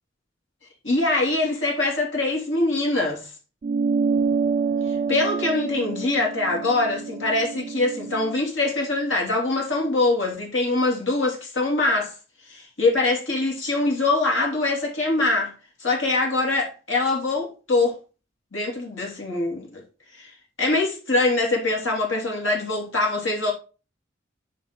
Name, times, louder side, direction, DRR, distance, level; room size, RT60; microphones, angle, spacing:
voice 1, 0.8-3.3 4.8-12.1 12.5-15.5 15.8-18.0 18.5-19.8 20.2-20.3 20.6-23.5, left 2 dB, 85° left, 3.0 m, -23 dB
sound 1, 3.6-8.4, right 5 dB, 40° right, 0.3 m, -27 dB
9.4 x 3.6 x 4.5 m
head